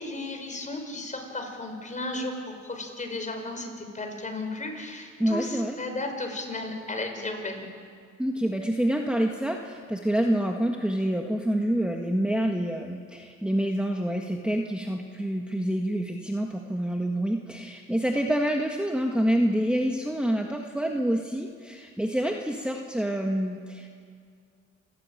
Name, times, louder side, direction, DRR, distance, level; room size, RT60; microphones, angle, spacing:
voice 1, 0.0-7.7, left 2 dB, 25° left, 4 dB, 5.2 m, -34 dB
voice 2, 5.2-5.8 8.2-23.9, right 1 dB, 5° right, 2 dB, 1.7 m, -27 dB
28.5 x 14.0 x 9.1 m, 2.2 s
cardioid pair, 90°, 30 cm